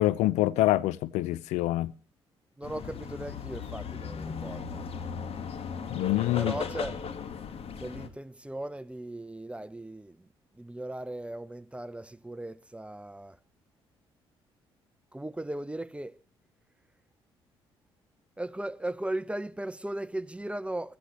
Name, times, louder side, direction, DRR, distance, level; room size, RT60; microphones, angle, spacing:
voice 1, 0.0-1.9 5.9-6.6, left 16 dB, 70° left, 0.5 m, -26 dB
sound 1, 2.6-8.1, left 6 dB, 50° left, 1.6 m, -37 dB
voice 2, 2.6-4.8 6.3-7.0 7.8-10.2 10.6-13.4 15.1-16.2 18.4-21.0, right 1 dB, 10° right, 0.7 m, -37 dB
15.5 x 14.0 x 3.0 m
hypercardioid pair, 45°, 12 cm